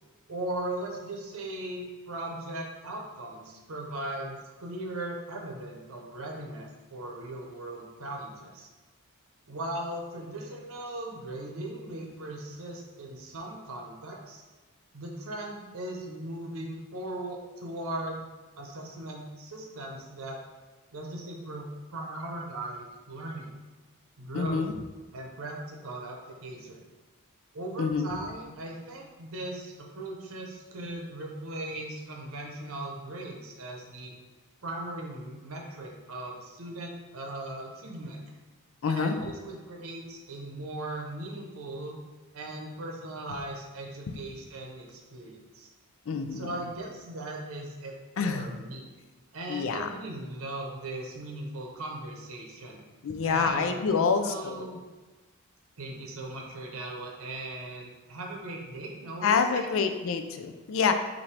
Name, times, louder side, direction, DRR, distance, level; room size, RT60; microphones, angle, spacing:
voice 1, 0.3-8.7 9.5-14.4 14.9-18.3 18.5-20.4 20.9-23.5 24.2-24.7 25.1-26.8 27.5-34.1 34.6-38.2 38.9-42.0 42.3-45.7 46.3-47.9 48.2-48.9 49.3-52.8 53.2-54.8 55.8-59.7, right 1 dB, 65° right, 0 dB, 0.8 m, -38 dB
voice 2, 24.3-24.7 27.8-28.1 38.8-39.2 46.1-46.5 48.2-48.5 49.5-49.9 53.0-54.7 59.2-60.9, left 5 dB, 60° left, 8 dB, 0.4 m, -27 dB
5.6 x 2.7 x 3.2 m, 1.2 s
head